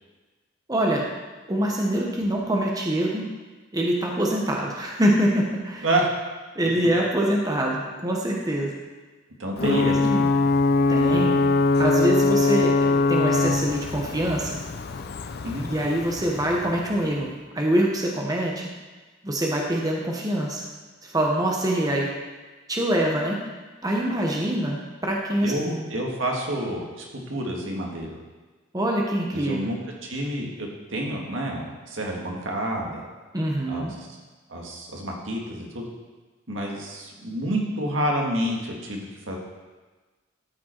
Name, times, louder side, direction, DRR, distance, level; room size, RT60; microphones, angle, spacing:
voice 1, 0.7-1.1 1.5-3.3 3.7-5.9 6.5-8.7 9.6-10.3 10.9-11.4 11.8-14.6 15.7-18.7 19.2-20.6 21.0-22.1 22.7-23.4 23.8-25.8 28.7-29.7 33.3-33.9, right 1 dB, 20° right, -1 dB, 1.0 m, -25 dB
voice 2, 9.4-10.0 11.1-11.3 15.4-15.7 25.4-28.2 29.3-33.1 33.7-34.1 34.5-35.9 36.5-39.4, right 1 dB, 80° right, -1 dB, 1.8 m, -29 dB
Ocean / Boat Water vehicle / Alarm, 9.6-17.1, left 3 dB, 55° left, 0.5 m, -22 dB
13.0 x 5.2 x 4.5 m, 1.3 s
head